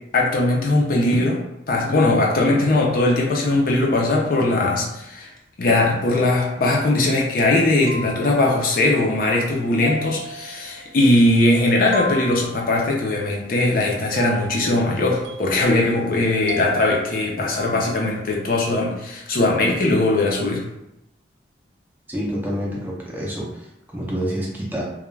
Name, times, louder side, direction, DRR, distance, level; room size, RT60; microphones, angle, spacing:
voice 1, 0.1-5.3 5.6-20.7, left 2 dB, 50° left, -1 dB, 0.4 m, -20 dB
sound 1, 6.1-7.2 7.9-8.8 9.8-11.4 11.9-13.1 14.2-18.4, right 1 dB, 80° right, 0.5 m, -36 dB
voice 2, 22.1-24.8, equal, 10° right, -4 dB, 0.4 m, -28 dB
2.2 x 2.1 x 3.1 m, 0.86 s
head